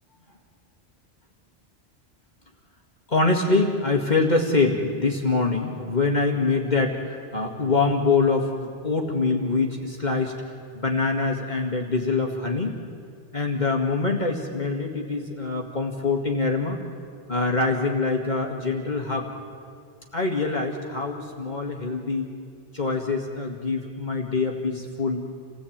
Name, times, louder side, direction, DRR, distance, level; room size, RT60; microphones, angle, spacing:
voice 1, 3.1-10.4 10.7-12.8 13.3-16.8 17.3-19.3 20.1-22.3 22.7-25.2, left 3 dB, 40° left, 1 dB, 2.2 m, -24 dB
28.0 x 17.5 x 8.8 m, 2.2 s
omnidirectional pair, 1.1 m